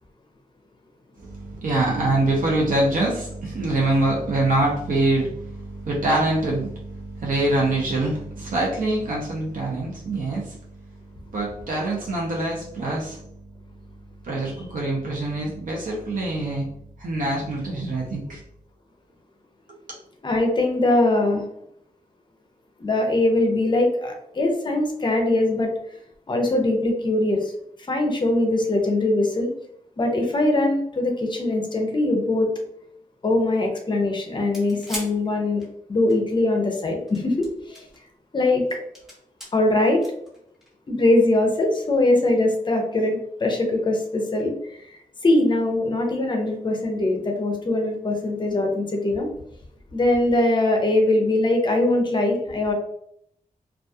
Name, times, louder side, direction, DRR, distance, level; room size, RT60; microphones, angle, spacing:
voice 1, 1.2-10.6 11.3-13.2 14.2-16.7 17.0-18.4 19.7-19.8, right 2 dB, 70° right, -3 dB, 0.6 m, -24 dB
voice 2, 20.2-21.4 22.8-25.7 26.3-27.5 27.9-29.5 30.0-32.5 33.2-35.6 35.9-37.8 38.3-38.6 39.5-40.0 40.9-49.3 49.9-52.7, left 2 dB, 35° left, 2 dB, 0.5 m, -22 dB
sound 1, 34.4-36.1 36.9-38.0 38.5-39.5 40.0-40.9 41.9-42.0, equal, ahead, 0.8 m, -38 dB
2.3 x 2.3 x 2.6 m, 0.72 s
wide cardioid pair, 160°, 14 cm